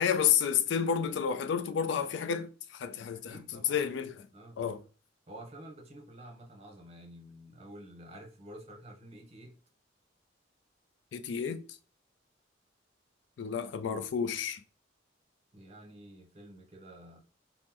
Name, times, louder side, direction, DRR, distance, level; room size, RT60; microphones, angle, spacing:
voice 1, 0.0-3.4 3.7-4.3 4.6-4.8 11.1-11.8 13.4-14.6, left 7 dB, 70° left, 0.3 m, -30 dB
voice 2, 3.2-3.8 4.3-4.6 5.3-9.6 15.5-17.2, right 1 dB, 35° right, 0.8 m, -50 dB
3.0 x 2.0 x 3.5 m
head